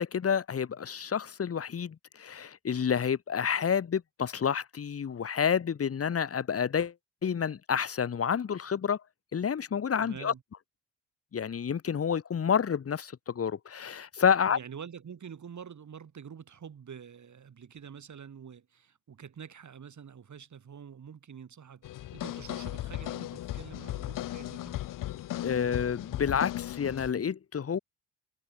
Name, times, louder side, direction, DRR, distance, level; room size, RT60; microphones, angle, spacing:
voice 1, 0.0-6.9 7.2-9.0 9.3-10.3 11.3-14.6 25.4-27.8, left 7 dB, 40° left, 1.5 m, -29 dB
voice 2, 10.0-10.4 14.5-24.8, right 7 dB, 50° right, 6.3 m, -47 dB
sound 1, 21.8-27.1, left 14 dB, 60° left, 0.8 m, -37 dB
supercardioid pair, 65°, 38 cm